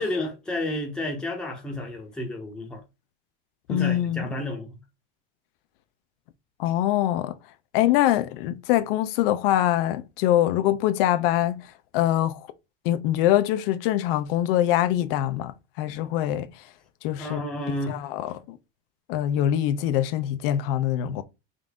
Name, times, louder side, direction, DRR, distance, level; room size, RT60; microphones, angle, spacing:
voice 1, 0.0-2.8 3.7-4.8 17.2-18.0, left 1 dB, 5° left, 0.8 m, -31 dB
voice 2, 3.7-4.2 6.6-7.4 7.7-11.6 11.9-12.5 12.8-16.6 17.0-17.4 17.9-18.6 19.1-21.2, left 12 dB, 70° left, 0.6 m, -24 dB
3.8 x 2.6 x 3.4 m
supercardioid pair, 155°, 29 cm